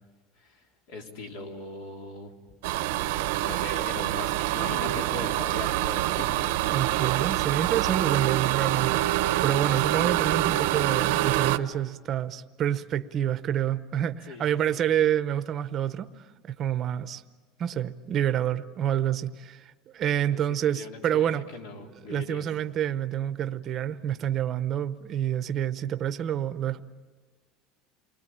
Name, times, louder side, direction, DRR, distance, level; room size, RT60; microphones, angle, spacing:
voice 1, 0.4-2.3 3.4-6.4 14.3-14.8 20.5-22.4, left 2 dB, 75° left, 3.5 m, -40 dB
sound 1, 2.6-11.6, right 15 dB, 90° right, 0.9 m, -26 dB
voice 2, 6.7-16.1 16.4-17.2 17.6-21.4 22.1-26.8, right 10 dB, 30° right, 0.8 m, -28 dB
28.5 x 21.0 x 8.7 m
cardioid pair, 170°, 0 cm